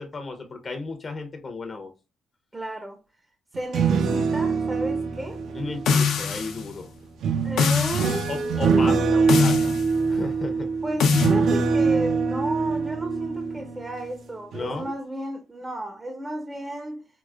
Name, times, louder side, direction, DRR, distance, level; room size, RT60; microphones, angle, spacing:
voice 1, 0.0-1.9 5.5-6.9 8.3-9.7 10.1-10.7 14.5-14.9, left 3 dB, 40° left, 0.6 m, -34 dB
voice 2, 2.5-3.0 3.5-5.4 7.4-9.0 10.8-17.1, right 1 dB, 15° right, 0.5 m, -33 dB
sound 1, 3.5-6.4 7.2-14.1 14.5-14.8, right 5 dB, 70° right, 0.4 m, -24 dB
sound 2, 5.9-6.6 7.6-8.3 9.3-9.9 11.0-11.3, left 5 dB, 80° left, 0.6 m, -22 dB
4.6 x 2.0 x 2.3 m
cardioid pair, 90°, 0 cm